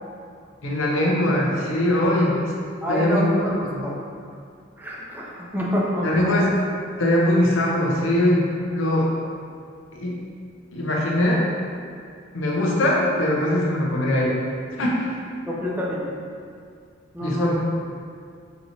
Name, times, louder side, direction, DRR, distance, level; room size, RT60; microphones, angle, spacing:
voice 1, 0.6-2.4 2.9-3.3 3.6-3.8 6.0-6.5 7.0-9.1 9.9-10.2 10.7-11.4 12.3-14.4 14.8-15.2 17.2-17.6, left 1 dB, 80° left, -3 dB, 0.8 m, -21 dB
voice 2, 2.8-4.0 4.8-6.3 15.5-16.1 17.1-17.6, equal, 10° right, -4 dB, 0.6 m, -27 dB
5.5 x 2.9 x 2.7 m, 2.2 s
head